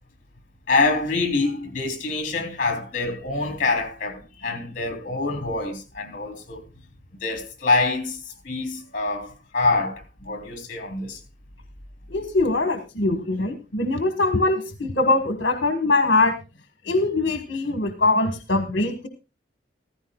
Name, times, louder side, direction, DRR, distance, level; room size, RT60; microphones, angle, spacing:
voice 1, 0.7-6.6 7.1-8.2 8.4-11.2, left 3 dB, 45° left, 3.2 m, -25 dB
voice 2, 12.1-16.3 16.9-19.1, left 2 dB, 65° left, 1.3 m, -22 dB
15.0 x 15.0 x 2.3 m
head